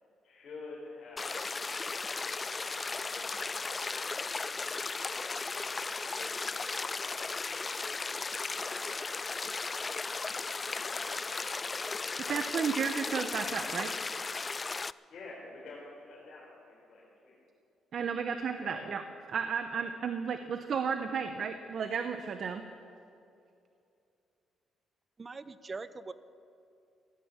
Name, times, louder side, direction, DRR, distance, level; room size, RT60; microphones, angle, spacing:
voice 1, 0.2-4.6 6.0-6.7 8.4-9.8 10.4-11.8 15.1-17.4 18.2-18.3 18.6-18.8 19.7-19.9, left 3 dB, 55° left, -6 dB, 4.4 m, -50 dB
sound 1, 1.2-14.9, left 4 dB, 30° left, 0.3 m, -36 dB
voice 2, 12.2-13.9 17.9-19.0 19.3-22.6, right 6 dB, 60° right, 8 dB, 0.9 m, -33 dB
voice 3, 25.2-26.1, right 3 dB, 30° right, 14 dB, 0.7 m, -42 dB
16.5 x 11.5 x 7.3 m, 2.6 s
cardioid pair, 90°, 0 cm